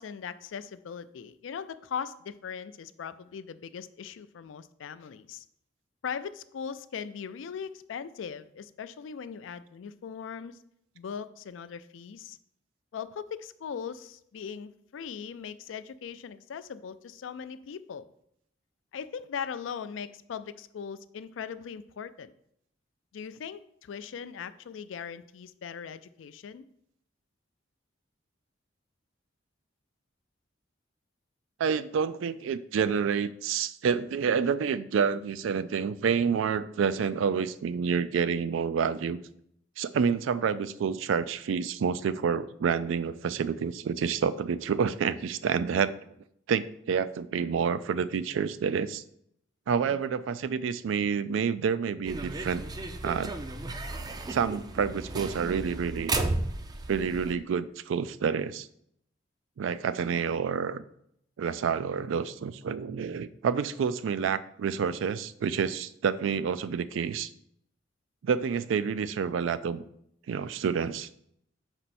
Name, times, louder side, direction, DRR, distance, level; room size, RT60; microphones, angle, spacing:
voice 1, 0.0-5.5 6.0-10.6 11.0-12.4 12.9-18.0 18.9-22.3 23.1-26.6 49.8-50.0 59.8-60.1, left 7 dB, 80° left, 14 dB, 0.4 m, -39 dB
voice 2, 31.6-39.2 39.8-45.9 46.5-49.0 49.7-52.6 53.0-53.3 54.3-56.1 56.9-58.7 59.6-60.8 61.4-67.3 68.2-69.8 70.3-71.1, right 6 dB, 90° right, 15 dB, 0.3 m, -28 dB
sound 1, 52.1-57.3, right 2 dB, 20° right, 0.4 m, -34 dB
5.4 x 4.4 x 4.2 m, 0.71 s
head